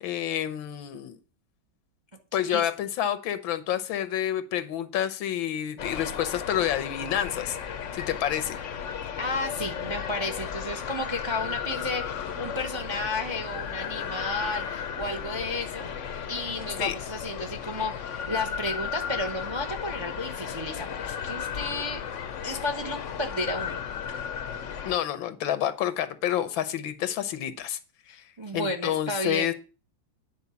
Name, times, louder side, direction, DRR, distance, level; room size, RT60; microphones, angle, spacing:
voice 1, 0.0-1.2 2.3-7.6 7.9-8.6 16.8-16.9 24.8-27.8 28.1-28.2 28.5-29.5, left 11 dB, 85° left, 13 dB, 1.6 m, -29 dB
sound 1, 5.8-25.0, left 7 dB, 55° left, 0.8 m, -35 dB
voice 2, 9.2-15.9 16.3-22.0 22.4-23.8 28.4-29.5, left 2 dB, 30° right, 5 dB, 0.5 m, -32 dB
9.6 x 4.5 x 6.9 m, 0.35 s
omnidirectional pair, 2.1 m